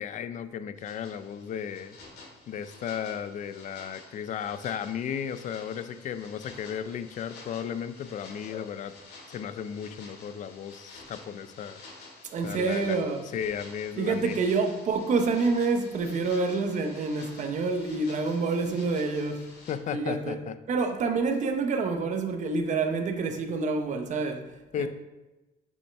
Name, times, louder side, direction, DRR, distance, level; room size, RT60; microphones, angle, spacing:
voice 1, 0.0-2.0 2.5-8.9 9.3-11.8 12.4-13.0 13.3-14.3 19.7-20.5 24.7-24.9, left 8 dB, 50° left, 0.5 m, -35 dB
sound 1, 0.8-19.8, left 3 dB, 80° left, 2.1 m, -50 dB
voice 2, 12.2-13.3 14.0-19.6 19.9-20.4 20.7-24.9, right 4 dB, 45° right, 0.8 m, -27 dB
6.5 x 5.3 x 3.4 m
cardioid pair, 110°, 17 cm